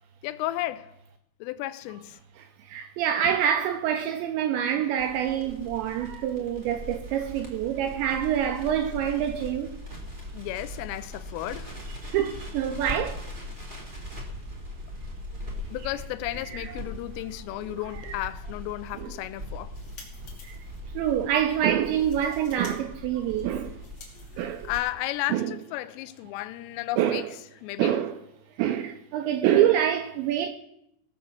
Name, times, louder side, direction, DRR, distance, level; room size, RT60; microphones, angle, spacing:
voice 1, 0.2-1.0 1.4-2.2 10.3-11.8 15.7-19.7 24.6-28.0, left 16 dB, 85° left, 3.1 m, -33 dB
voice 2, 2.6-9.8 12.1-13.2 17.7-18.2 19.0-19.1 20.4-20.6 20.9-23.8 24.4-24.7 25.3-25.5 27.0-27.3 27.8-28.2 28.6-30.5, right 10 dB, 85° right, 2.7 m, -26 dB
Crackle, 5.0-24.8, left 1 dB, 20° right, 1.3 m, -40 dB
sound 1, 19.6-20.8 21.3-21.4 21.8-22.7 23.0-25.0, left 3 dB, 35° left, 3.0 m, -51 dB
17.5 x 6.6 x 7.2 m
omnidirectional pair, 5.9 m